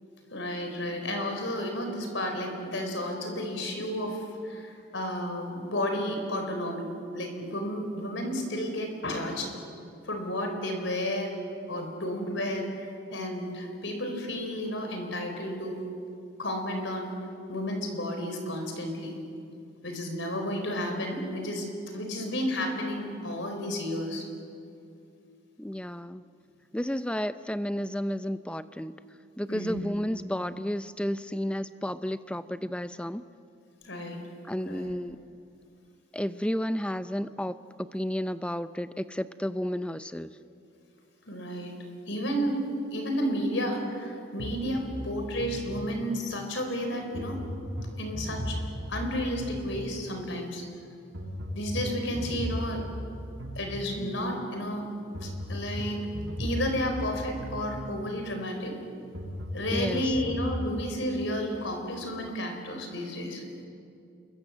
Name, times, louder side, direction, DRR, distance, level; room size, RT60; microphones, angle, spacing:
voice 1, 0.3-9.5 10.0-11.3 11.7-15.8 16.4-17.1 17.5-19.1 19.8-21.7 21.9-24.2 29.4-29.8 33.8-34.2 34.7-34.9 41.3-41.7 42.1-42.6 42.9-47.4 48.0-48.6 48.9-50.6 51.5-52.8 53.5-54.9 55.2-56.1 56.4-58.7 59.5-63.4, equal, 70° left, 4 dB, 4.6 m, -32 dB
voice 2, 25.6-26.2 26.7-28.9 29.4-33.2 34.5-35.2 36.1-40.3 59.7-60.2, equal, 5° left, 12 dB, 0.6 m, -32 dB
sound 1, 44.4-46.3 47.1-50.2 51.1-54.2 55.1-58.2 59.1-60.5, equal, 75° right, 7.5 m, -37 dB
28.0 x 22.5 x 7.4 m, 2.6 s
head